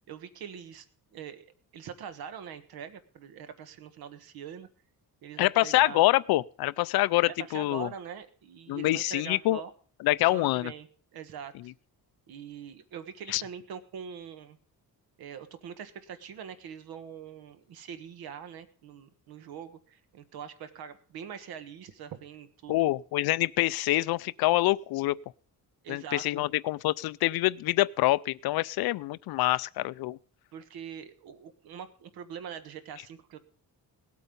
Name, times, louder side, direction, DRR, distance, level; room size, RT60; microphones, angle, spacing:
voice 1, 0.1-0.9 1.1-4.7 5.2-6.1 7.3-9.7 10.3-10.9 11.1-11.7 12.3-14.6 15.2-22.9 25.8-26.5 30.5-33.4, right 8 dB, 85° right, 1.4 m, -43 dB
voice 2, 5.4-7.9 8.7-9.6 10.0-10.7 13.3-13.4 22.7-25.2 25.9-30.2, left 17 dB, 85° left, 0.5 m, -26 dB
18.0 x 8.4 x 5.3 m
cardioid pair, 170°, 36 cm